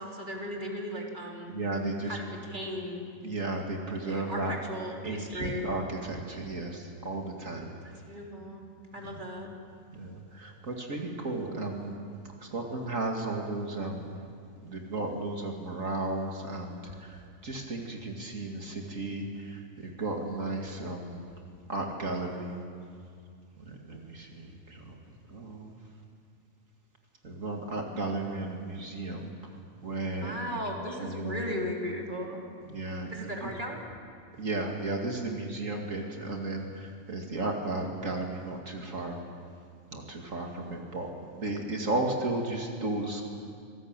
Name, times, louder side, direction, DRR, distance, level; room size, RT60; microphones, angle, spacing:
voice 1, 0.0-1.5 2.0-3.0 4.0-5.7 8.1-8.6 8.9-9.5 30.2-32.4 33.1-33.9, equal, 35° right, 0 dB, 3.7 m, -36 dB
voice 2, 1.5-2.2 3.2-4.5 5.0-7.7 9.0-9.2 9.9-12.0 12.4-14.1 14.6-21.3 21.7-22.7 23.6-25.0 25.3-25.8 27.2-29.3 29.8-30.3 30.7-31.7 32.7-33.5 34.4-39.2 39.9-43.3, right 2 dB, 65° right, 1 dB, 2.6 m, -34 dB
27.0 x 18.5 x 8.9 m, 2.3 s
omnidirectional pair, 1.5 m